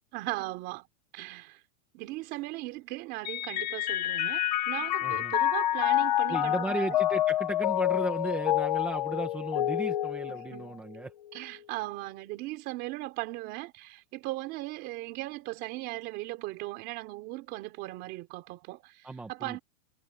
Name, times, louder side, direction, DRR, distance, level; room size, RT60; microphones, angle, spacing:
voice 1, 0.1-0.9 1.1-1.6 1.9-7.0 10.3-10.8 11.3-19.6, right 19 dB, 25° right, 3.3 m, -38 dB
Mallet percussion, 3.2-11.0, left 13 dB, 30° left, 0.6 m, -28 dB
voice 2, 5.0-5.3 6.3-11.1 19.0-19.6, right 3 dB, 5° right, 0.8 m, -35 dB
supercardioid pair, 180°, 41 cm